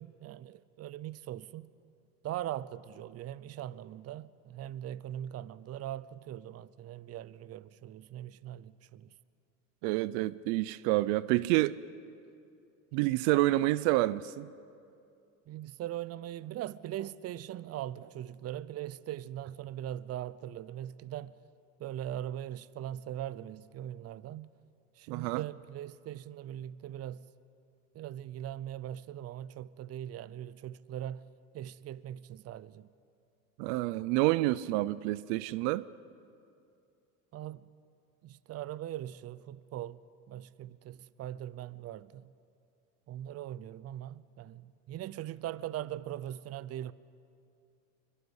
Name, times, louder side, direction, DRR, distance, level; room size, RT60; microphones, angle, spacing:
voice 1, 0.0-1.7 2.2-9.1 15.5-21.4 21.8-24.5 25.0-27.3 27.9-31.3 31.5-32.9 37.3-37.7 38.2-42.3 43.1-46.9, right 12 dB, 40° right, 0.7 m, -41 dB
voice 2, 9.8-11.8 12.9-14.5 25.1-25.4 33.6-35.8, right 18 dB, 75° right, 0.6 m, -28 dB
23.0 x 22.5 x 8.1 m
supercardioid pair, 105°, 38 cm